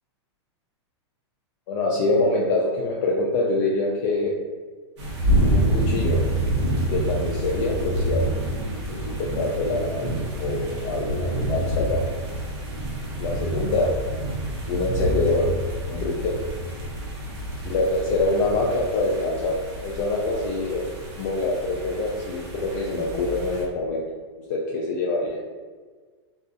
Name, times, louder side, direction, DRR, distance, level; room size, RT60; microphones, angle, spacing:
voice 1, 1.7-4.4 5.5-6.2 6.9-8.3 8.9-12.0 13.2-13.9 14.7-15.5 15.9-16.4 17.6-19.5 19.8-20.9 21.2-24.0 24.5-25.4, left 2 dB, 40° left, -3 dB, 0.4 m, -25 dB
sound 1, 5.0-23.6, right 1 dB, 70° right, 0.9 m, -27 dB
2.4 x 2.4 x 2.5 m, 1.4 s
hypercardioid pair, 145°, 15 cm